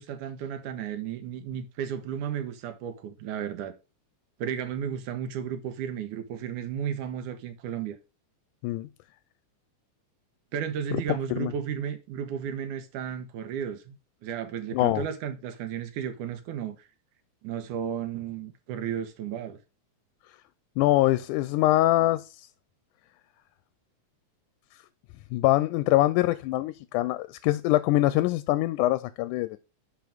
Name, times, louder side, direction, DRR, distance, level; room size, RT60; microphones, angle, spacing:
voice 1, 0.0-3.7 4.4-8.0 10.5-16.8 17.4-19.6, right 8 dB, 90° right, 2.6 m, -33 dB
voice 2, 10.9-11.5 14.7-15.0 20.8-22.2 25.3-29.6, left 16 dB, 90° left, 2.1 m, -24 dB
10.5 x 4.7 x 3.5 m
omnidirectional pair, 3.5 m